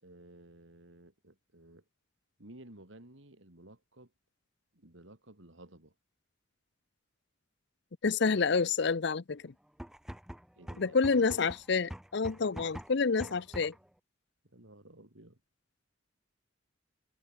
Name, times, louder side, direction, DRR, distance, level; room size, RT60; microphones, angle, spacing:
voice 1, 0.0-1.8 2.4-4.1 4.7-5.9 10.5-11.3 14.4-15.4, right 1 dB, 70° right, 3.3 m, -54 dB
voice 2, 8.0-9.5 10.8-13.7, left 4 dB, 60° left, 0.6 m, -28 dB
sound 1, 9.7-13.9, equal, 5° right, 0.4 m, -45 dB
head